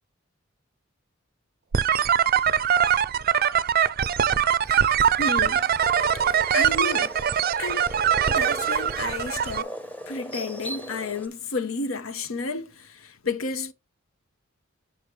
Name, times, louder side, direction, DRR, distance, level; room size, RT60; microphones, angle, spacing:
sound 1, 1.7-9.6, right 8 dB, 45° right, 0.4 m, -22 dB
voice 1, 5.1-5.7 6.1-6.2 6.5-7.2 7.6-7.9 8.3-9.7 10.1-13.7, left 3 dB, 80° left, 0.9 m, -31 dB
sound 2, 5.8-11.3, equal, 10° left, 0.8 m, -38 dB
7.2 x 6.8 x 3.1 m
head